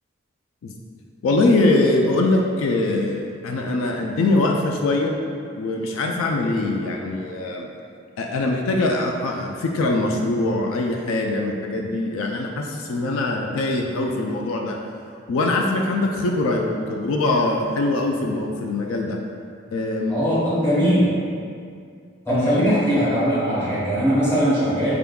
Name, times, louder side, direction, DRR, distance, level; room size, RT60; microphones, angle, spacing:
voice 1, 1.2-5.1 5.5-7.7 8.2-14.8 15.3-19.2 19.7-20.3 20.5-20.6 22.3-22.7, left 2 dB, 80° left, 1 dB, 0.3 m, -22 dB
voice 2, 20.1-21.1 22.2-25.0, equal, 10° left, -10 dB, 1.2 m, -20 dB
4.8 x 3.5 x 2.3 m, 2.3 s
head